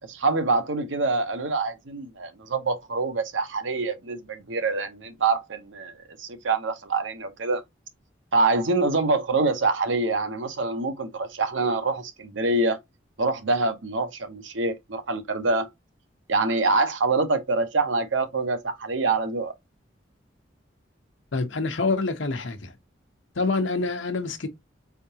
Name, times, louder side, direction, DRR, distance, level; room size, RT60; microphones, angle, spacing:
voice 1, 0.1-5.9 6.2-7.6 8.3-12.8 13.2-15.7 16.3-19.5, right 3 dB, 85° right, 0.9 m, -25 dB
voice 2, 21.3-22.7 23.3-24.5, left 3 dB, 85° left, 0.9 m, -26 dB
4.6 x 3.6 x 2.8 m
head